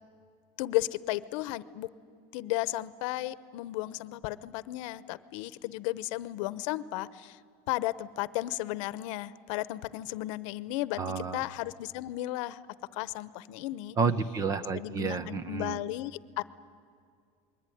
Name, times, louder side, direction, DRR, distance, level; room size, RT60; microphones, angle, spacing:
voice 1, 0.6-1.9 2.3-7.4 7.7-11.0 11.3-12.6 12.9-14.0 14.7-16.4, left 17 dB, 75° left, 17 dB, 0.9 m, -34 dB
voice 2, 11.0-11.4 14.0-15.8, right 5 dB, 20° right, 16 dB, 0.7 m, -30 dB
28.0 x 21.5 x 10.0 m, 2.3 s
cardioid pair, 170°, 16 cm